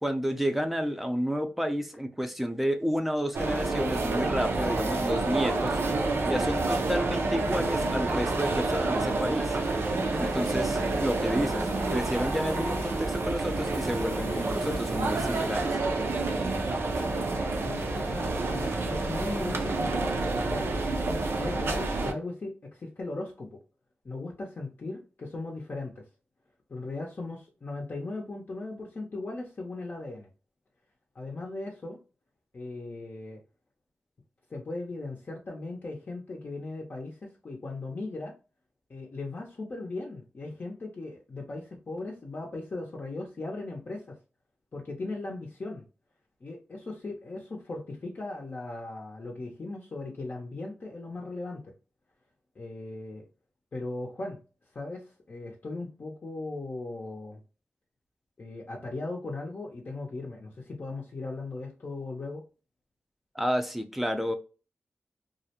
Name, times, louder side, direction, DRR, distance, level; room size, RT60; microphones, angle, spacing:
voice 1, 0.0-5.8 6.3-9.6 10.2-15.8 63.4-64.3, equal, 5° right, 7 dB, 0.5 m, -30 dB
sound 1, 3.3-22.1, right 3 dB, 80° right, 0.5 m, -29 dB
sound 2, 5.8-19.8, equal, 15° left, 0.9 m, -42 dB
voice 2, 17.6-20.8 21.4-23.6 24.0-26.0 26.7-30.3 31.1-32.0 32.5-33.4 34.5-38.3 38.9-44.2 44.7-45.8 46.4-51.7 52.6-53.3 53.7-54.4 54.7-57.4 58.4-62.4, left 2 dB, 50° left, -1 dB, 0.6 m, -38 dB
2.3 x 2.1 x 2.8 m, 0.34 s
wide cardioid pair, 70°, 4 cm